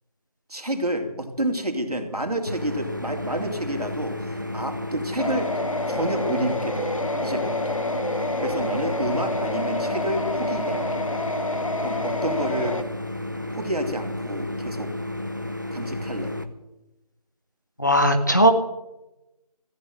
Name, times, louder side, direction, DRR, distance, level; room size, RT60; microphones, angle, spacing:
voice 1, 0.5-5.5 5.9-6.9 7.2-7.8 8.2-11.0 11.8-12.8 13.5-14.9 15.7-16.3, right 1 dB, 80° right, 4 dB, 3.2 m, -29 dB
sound 1, 2.5-16.4, left 1 dB, 30° right, 0.7 m, -32 dB
sound 2, 5.2-12.8, left 1 dB, 55° left, 1.2 m, -28 dB
voice 2, 17.8-18.5, right 1 dB, 30° left, 6 dB, 1.0 m, -17 dB
14.5 x 9.4 x 8.0 m, 0.94 s
figure-of-eight pair, 180°, 20 cm